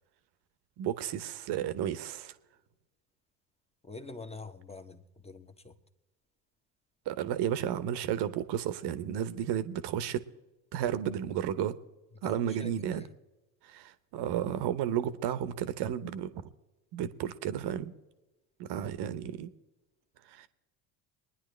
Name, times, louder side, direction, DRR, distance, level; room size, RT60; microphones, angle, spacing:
voice 1, 0.8-2.3 7.1-10.2 10.7-11.7 12.2-13.0 13.7-16.5 16.9-17.9 18.6-19.5 20.3-20.5, right 10 dB, 55° right, 1.0 m, -32 dB
voice 2, 3.8-5.8 12.2-13.1, left 3 dB, 10° left, 1.2 m, -45 dB
23.0 x 10.0 x 3.3 m
hypercardioid pair, 65°, 49 cm